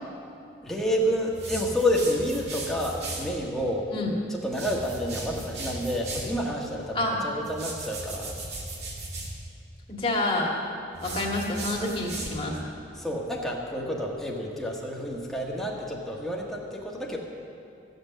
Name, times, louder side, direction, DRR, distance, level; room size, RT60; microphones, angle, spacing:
voice 1, 0.6-3.9 4.3-8.4 12.9-17.2, equal, ahead, -3 dB, 1.5 m, -29 dB
sound 1, 1.3-3.3 4.4-6.4 7.4-9.3 10.9-12.5, right 2 dB, 70° right, 2.4 m, -37 dB
voice 2, 9.9-10.5 11.0-12.6, left 2 dB, 30° left, -2 dB, 1.9 m, -28 dB
14.5 x 7.9 x 7.3 m, 2.5 s
head